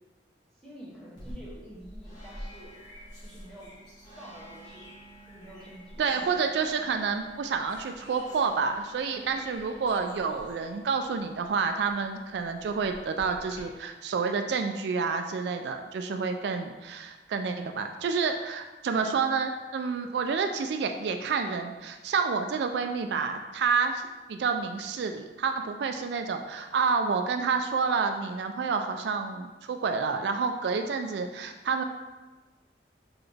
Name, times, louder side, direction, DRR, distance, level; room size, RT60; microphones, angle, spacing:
voice 1, 0.6-2.7 3.2-3.8 4.2-5.0 5.3-6.3, equal, 5° left, -7 dB, 1.1 m, -48 dB
sound 1, 1.2-13.6, equal, 25° left, 1.5 m, -48 dB
voice 2, 6.0-24.0 24.3-31.8, right 5 dB, 70° right, 6 dB, 0.3 m, -29 dB
3.9 x 3.9 x 3.4 m, 1.2 s
head